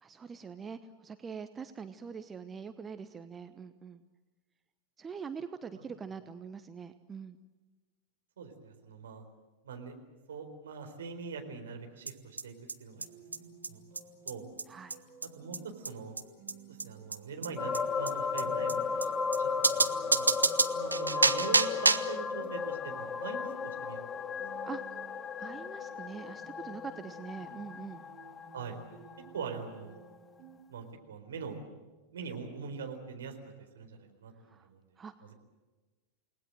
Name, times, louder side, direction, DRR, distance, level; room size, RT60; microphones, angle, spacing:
voice 1, 0.0-4.0 5.0-7.4 14.7-15.0 24.6-24.8 25.4-28.0 34.5-34.7 35.0-35.3, right 6 dB, 20° right, 10 dB, 1.0 m, -44 dB
voice 2, 8.4-9.2 9.6-10.0 10.3-12.5 12.8-13.1 13.7-13.8 14.2-14.5 15.4-16.2 16.7-20.3 20.7-24.0 24.3-24.4 28.5-28.8 29.3-30.0 30.7-31.6 32.1-33.4 33.7-34.8, right 5 dB, 65° right, 4 dB, 4.3 m, -42 dB
sound 1, 12.1-12.2 12.4-12.5 12.7-12.8 13.0-13.1 13.3-13.4 13.6-13.7 14.0-14.1 14.3-14.4 14.6-14.7 14.9-15.0 15.2-15.3 15.5-15.6 15.9-16.0 16.2-16.3 16.5-16.6 16.8-16.9 17.1-17.2 17.4-17.5 17.7-17.8 18.1-18.2 18.4-18.5 18.7-18.8 19.0-19.1 19.3-19.4 19.6-22.2, right 3 dB, 80° right, 0.9 m, -28 dB
sound 2, 12.9-30.6, right 4 dB, 35° right, 7.0 m, -56 dB
sound 3, 17.6-29.4 29.7-29.8, left 5 dB, 20° left, 0.8 m, -35 dB
29.0 x 19.5 x 7.8 m, 1.2 s
figure-of-eight pair, 90°, 0 cm